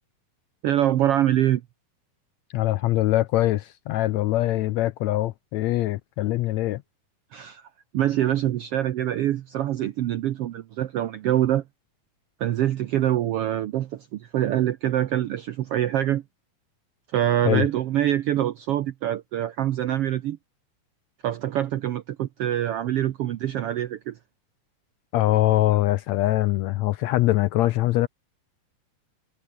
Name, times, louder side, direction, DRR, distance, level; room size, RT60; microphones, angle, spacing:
voice 1, 0.6-1.6 7.3-7.7 7.9-11.6 12.4-16.2 17.1-20.4 21.2-24.2, right 12 dB, 75° right, 1.3 m, -25 dB
voice 2, 2.5-6.8 17.4-17.7 25.1-28.1, left 16 dB, 80° left, 1.6 m, -23 dB
omnidirectional pair, 3.7 m